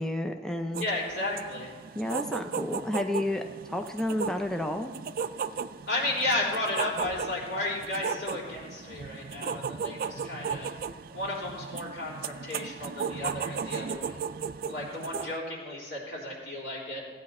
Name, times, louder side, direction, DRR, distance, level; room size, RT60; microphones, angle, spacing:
voice 1, 0.0-0.9 2.0-4.9, left 1 dB, 5° left, 4 dB, 0.5 m, -31 dB
sound 1, 0.7-15.4, right 6 dB, 55° right, 0.4 m, -36 dB
voice 2, 0.8-1.7 5.9-10.7 11.1-14.3 14.6-17.0, left 2 dB, 80° left, -5 dB, 3.5 m, -33 dB
16.0 x 8.7 x 4.2 m, 1.4 s
head